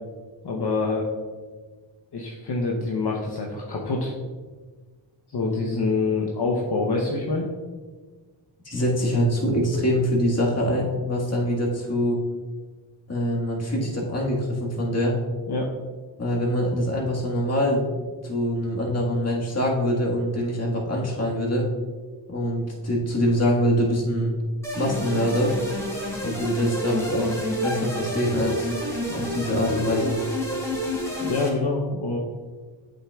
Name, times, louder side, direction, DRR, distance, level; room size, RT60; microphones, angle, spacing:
voice 1, 0.4-1.1 2.1-4.1 5.3-7.5 15.5-15.7 31.2-32.2, left 3 dB, 55° left, -2 dB, 0.9 m, -26 dB
voice 2, 8.7-12.2 13.1-15.2 16.2-17.9 18.2-21.7 22.3-24.4 24.8-25.5 26.2-28.7 29.1-30.2, equal, 35° left, -3 dB, 1.7 m, -24 dB
sound 1, 24.6-31.5, equal, 5° left, 2.0 m, -29 dB
8.2 x 6.4 x 2.4 m, 1.4 s
cardioid pair, 70°, 46 cm